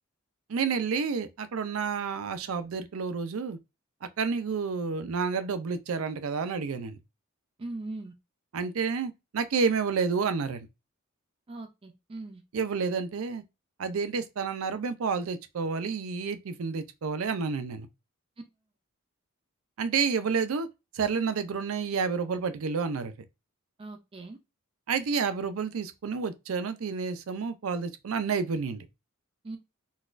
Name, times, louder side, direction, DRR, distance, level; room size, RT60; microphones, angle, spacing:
voice 1, 0.5-3.6 4.0-7.0 8.5-10.7 12.5-13.4 13.8-17.9 19.8-20.7 20.9-23.1 24.9-28.9, right 5 dB, 80° right, 0.5 m, -30 dB
voice 2, 7.6-8.1 11.5-12.4 23.8-24.4 29.4-29.6, right 2 dB, 25° right, 0.4 m, -40 dB
3.9 x 2.3 x 2.5 m
head